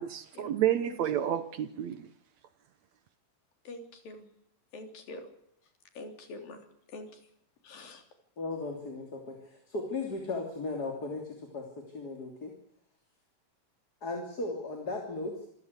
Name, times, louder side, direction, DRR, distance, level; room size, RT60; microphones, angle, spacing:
voice 1, 0.0-2.1, right 11 dB, 65° right, 2.0 m, -30 dB
voice 2, 3.6-4.3 4.7-5.3 5.9-6.6 6.9-7.1 7.6-8.0, left 2 dB, 90° left, 5.1 m, -44 dB
voice 3, 8.4-12.5 14.0-15.5, left 3 dB, 30° left, 3.3 m, -36 dB
27.5 x 15.5 x 8.3 m
omnidirectional pair, 3.9 m